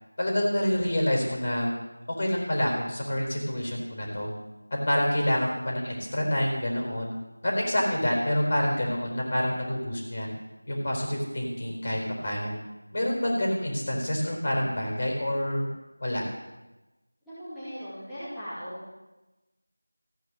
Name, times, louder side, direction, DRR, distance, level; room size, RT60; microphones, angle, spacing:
voice 1, 0.2-1.7 2.2-4.3 4.9-7.1 7.4-10.3 10.7-12.6 12.9-15.7 16.0-16.2, equal, 30° left, -1 dB, 4.3 m, -27 dB
voice 2, 17.3-18.8, equal, ahead, -20 dB, 2.5 m, -38 dB
16.0 x 9.3 x 7.6 m, 1.1 s
figure-of-eight pair, 175°, 0 cm